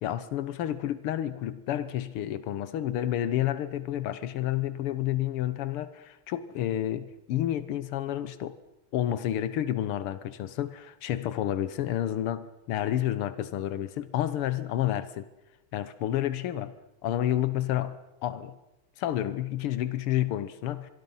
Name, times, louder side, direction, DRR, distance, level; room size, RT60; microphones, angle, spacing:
voice 1, 0.0-8.6 8.9-15.3 15.7-16.8 17.0-18.6 19.0-20.9, left 12 dB, 90° left, 1.9 m, -30 dB
24.5 x 23.0 x 5.6 m
omnidirectional pair, 2.4 m